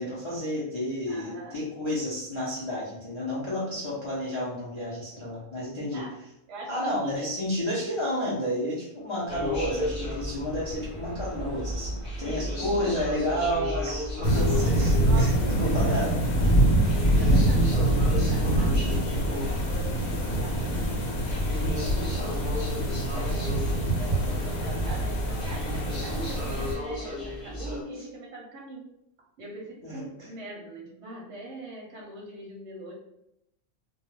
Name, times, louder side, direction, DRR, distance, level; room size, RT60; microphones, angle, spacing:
voice 1, 0.0-6.1 6.7-16.1 24.0-24.3 29.8-30.3, equal, 50° left, -7 dB, 0.3 m, -31 dB
voice 2, 1.1-1.6 5.9-6.2 6.5-7.3 12.2-13.1 15.0-16.2 16.9-20.1 20.4-21.0 21.4-22.6 23.1-28.9 29.4-32.9, right 1 dB, 65° right, -2 dB, 0.8 m, -42 dB
sound 1, 9.3-27.8, left 1 dB, 30° left, 0.7 m, -35 dB
sound 2, 14.2-26.7, right 1 dB, 75° left, 1.0 m, -25 dB
2.2 x 2.1 x 3.1 m, 0.82 s
omnidirectional pair, 1.5 m